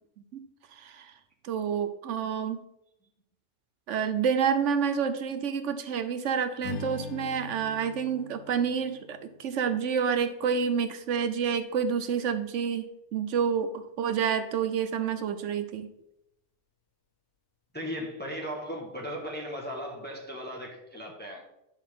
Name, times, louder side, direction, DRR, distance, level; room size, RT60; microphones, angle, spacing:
voice 1, 0.8-1.1 1.4-2.6 3.9-13.7 14.0-15.9, right 7 dB, 80° right, 10 dB, 1.1 m, -28 dB
Strum, 6.6-11.0, left 5 dB, 70° left, 1.1 m, -43 dB
voice 2, 17.7-21.5, equal, 10° left, -1 dB, 1.4 m, -37 dB
10.0 x 6.3 x 3.6 m, 0.82 s
omnidirectional pair, 1.2 m